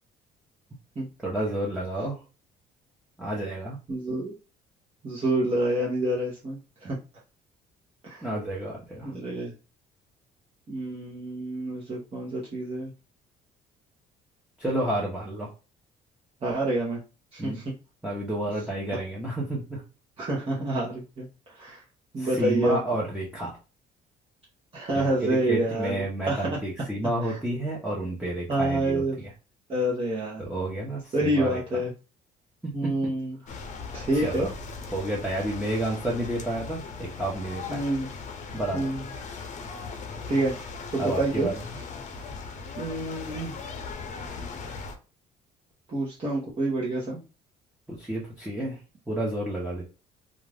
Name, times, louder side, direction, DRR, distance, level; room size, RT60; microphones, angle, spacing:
voice 1, 1.2-2.2 3.2-3.8 8.2-9.1 14.6-15.5 17.4-17.6 18.0-19.8 22.2-23.6 24.9-29.3 30.4-31.6 32.8-32.9 33.5-33.7 34.1-34.5 34.9-37.8 38.5-38.9 41.0-41.5 47.9-48.8 49.1-49.8, right 1 dB, 5° right, -5 dB, 1.0 m, -30 dB
voice 2, 3.9-4.3 5.0-7.0 8.0-8.3 9.0-9.5 10.7-12.9 16.4-17.0 17.3-17.7 20.2-21.8 22.1-22.8 24.7-26.0 26.3-26.6 27.2-27.4 28.5-29.2 29.7-30.4 31.1-31.9 32.7-33.4 33.9-34.5 37.7-38.1 38.7-39.0 40.3-40.5 40.9-41.5 42.8-43.5 45.9-47.2, right 1 dB, 35° right, -4 dB, 1.0 m, -27 dB
sound 1, 33.5-44.9, left 4 dB, 45° left, 0.7 m, -39 dB
2.5 x 2.4 x 3.4 m, 0.32 s
cardioid pair, 110°, 17 cm